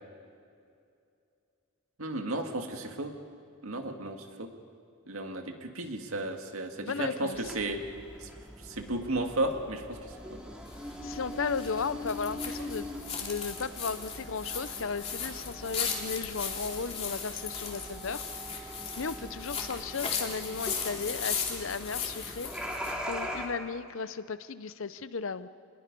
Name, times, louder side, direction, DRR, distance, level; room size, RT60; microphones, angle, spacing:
voice 1, 2.0-3.1 3.6-4.5 5.1-7.8 8.2-8.3 8.6-10.0 10.3-10.4, right 2 dB, 75° right, 4 dB, 2.0 m, -33 dB
voice 2, 6.8-7.5 11.0-12.9 13.2-18.2 19.0-22.5 23.1-25.5, left 5 dB, 65° left, 14 dB, 0.7 m, -35 dB
sound 1, 7.3-23.5, equal, 5° right, 2.4 m, -42 dB
sound 2, 10.7-23.0, left 6 dB, 30° left, 2.5 m, -37 dB
28.5 x 20.5 x 5.4 m, 2.5 s
head